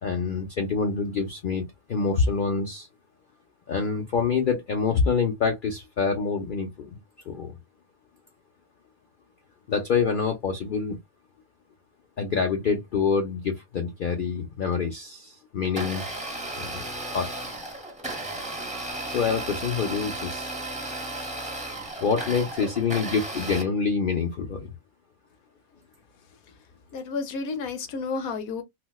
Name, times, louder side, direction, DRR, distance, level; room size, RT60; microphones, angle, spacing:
voice 1, 0.0-2.9 3.7-7.0 7.3-7.6 9.7-11.0 12.2-16.1 16.6-16.9 17.1-17.3 18.6-20.6 22.0-24.7, left 5 dB, 50° left, 0.6 m, -26 dB
Domestic sounds home sounds, 15.6-23.6, right 2 dB, 5° right, 0.8 m, -34 dB
voice 2, 26.9-28.6, left 4 dB, 85° left, 1.3 m, -31 dB
4.2 x 2.1 x 2.2 m
omnidirectional pair, 1.5 m